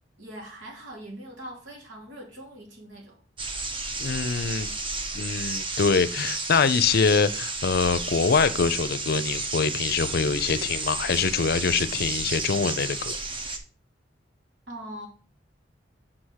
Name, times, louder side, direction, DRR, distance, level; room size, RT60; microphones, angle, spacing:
voice 1, 0.2-3.2 14.7-15.1, right 1 dB, 80° right, 3.1 m, -41 dB
sound 1, 3.4-13.6, right 3 dB, 30° right, 1.1 m, -32 dB
voice 2, 4.0-4.7 5.1-13.2, left 5 dB, 60° left, 0.6 m, -24 dB
6.1 x 4.9 x 6.2 m
head